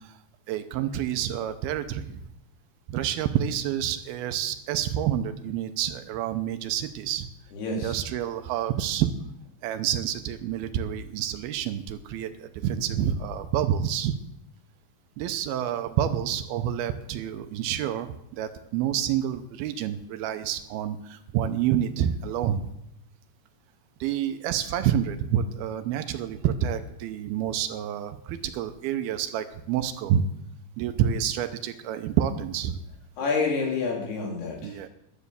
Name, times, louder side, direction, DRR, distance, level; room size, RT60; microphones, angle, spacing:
voice 1, 0.5-2.2 2.9-7.3 7.7-9.1 9.6-14.2 15.2-22.6 24.0-30.2 30.8-32.8 34.6-34.9, right 10 dB, 85° right, 9 dB, 2.5 m, -28 dB
voice 2, 7.5-8.0 33.2-34.8, left 4 dB, 80° left, 0 dB, 4.7 m, -28 dB
12.0 x 8.2 x 6.9 m, 0.79 s
omnidirectional pair, 4.6 m